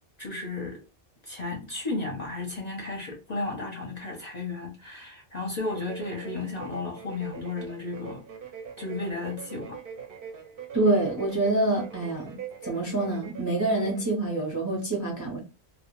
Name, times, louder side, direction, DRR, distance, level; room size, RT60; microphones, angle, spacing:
voice 1, 0.2-0.8 1.2-8.2 8.8-9.8, left 3 dB, 45° left, 0.6 m, -34 dB
sound 1, 5.6-14.1, right 7 dB, 60° right, 0.7 m, -43 dB
voice 2, 10.7-12.4 12.6-15.4, right 2 dB, 25° right, 0.5 m, -26 dB
2.1 x 2.1 x 2.9 m
omnidirectional pair, 1.2 m